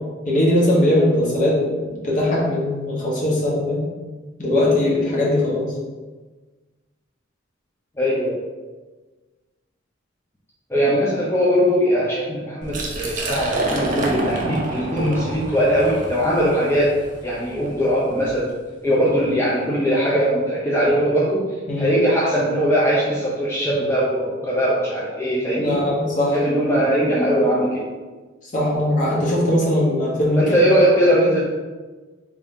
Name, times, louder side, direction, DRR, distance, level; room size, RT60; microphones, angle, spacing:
voice 1, 0.3-3.8 4.4-5.7 14.9-15.2 21.7-21.9 25.6-26.4 28.5-30.4, left 1 dB, 40° left, -4 dB, 1.0 m, -20 dB
voice 2, 8.0-8.4 10.7-16.9 17.2-18.5 18.8-21.4 21.8-25.8 26.3-27.9 30.4-31.5, equal, 15° left, -6 dB, 0.5 m, -20 dB
Liquid, 12.6-18.4, right 2 dB, 40° right, 0.6 m, -28 dB
3.4 x 2.7 x 3.6 m, 1.3 s
head